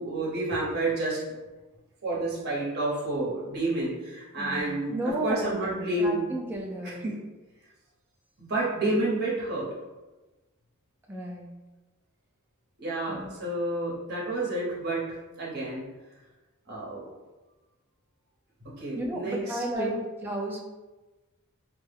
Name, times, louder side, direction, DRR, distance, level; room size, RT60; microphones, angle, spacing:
voice 1, 0.0-1.4 2.0-6.3 6.8-7.2 8.4-9.7 12.8-15.9 16.7-17.1 18.6-19.9, right 2 dB, 50° right, -6 dB, 0.9 m, -30 dB
voice 2, 4.4-5.7 6.0-7.0 11.1-11.5 13.1-13.3 18.9-20.6, right 1 dB, 10° right, -1 dB, 0.3 m, -33 dB
2.2 x 2.1 x 3.2 m, 1.1 s
head